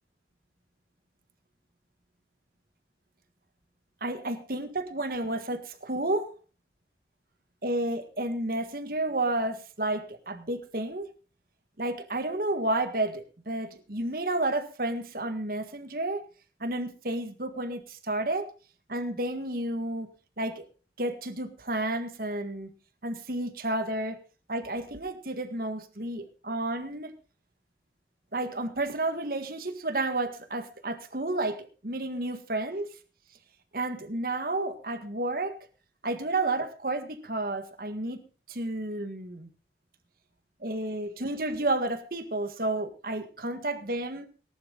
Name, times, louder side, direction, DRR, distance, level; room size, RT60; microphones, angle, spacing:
voice 1, 4.0-6.4 7.6-11.1 11.8-16.3 16.6-18.5 18.9-20.1 20.4-20.7 21.0-22.7 23.0-24.2 24.5-27.1 28.3-32.9 33.7-35.6 36.0-38.2 38.5-39.5 40.6-44.3, right 2 dB, 55° right, 9 dB, 1.7 m, -31 dB
18.0 x 11.5 x 4.0 m, 0.34 s
head